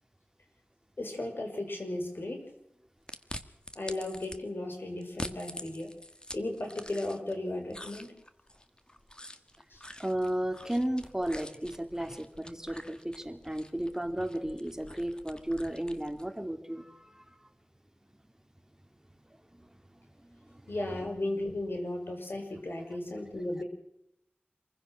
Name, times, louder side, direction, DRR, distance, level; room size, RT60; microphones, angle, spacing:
voice 1, 1.0-2.5 3.7-5.9 6.3-8.1 9.7-9.8 20.7-23.6, left 1 dB, 70° left, 3 dB, 6.0 m, -35 dB
sound 1, 3.1-4.4 5.0-7.4 7.7-16.3, left 1 dB, 25° left, 1.7 m, -46 dB
voice 2, 10.0-17.4 20.5-20.6, right 1 dB, 15° right, 7 dB, 2.3 m, -34 dB
26.5 x 16.0 x 6.2 m, 0.80 s
wide cardioid pair, 55°, 4 cm